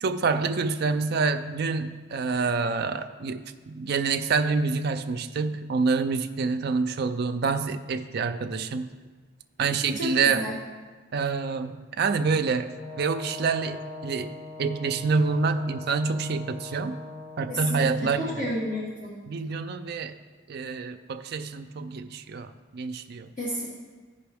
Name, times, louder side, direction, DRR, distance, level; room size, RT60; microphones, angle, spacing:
voice 1, 0.0-8.9 9.6-10.5 11.1-14.3 14.6-17.0 17.4-18.4 19.3-20.2 20.5-23.3, right 4 dB, 50° right, 7 dB, 0.4 m, -27 dB
voice 2, 9.9-10.5 17.5-19.2 23.4-23.7, equal, 40° left, -8 dB, 1.5 m, -31 dB
Brass instrument, 12.7-18.9, left 3 dB, 15° left, 0.7 m, -41 dB
14.0 x 5.4 x 3.4 m, 1.4 s
head